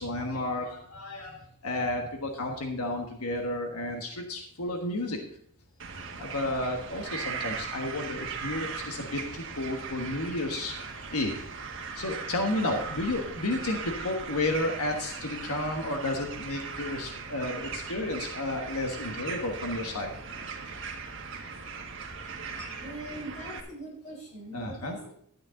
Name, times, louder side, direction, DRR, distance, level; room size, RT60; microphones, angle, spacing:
voice 1, 0.0-5.2 6.2-20.1 22.6-22.7 24.5-25.1, left 2 dB, 85° left, 3 dB, 1.4 m, -32 dB
sound 1, 5.8-23.6, right 5 dB, 55° right, 1.5 m, -39 dB
voice 2, 22.7-25.0, right 1 dB, 30° left, -2 dB, 4.3 m, -41 dB
12.0 x 9.5 x 3.8 m, 0.67 s
head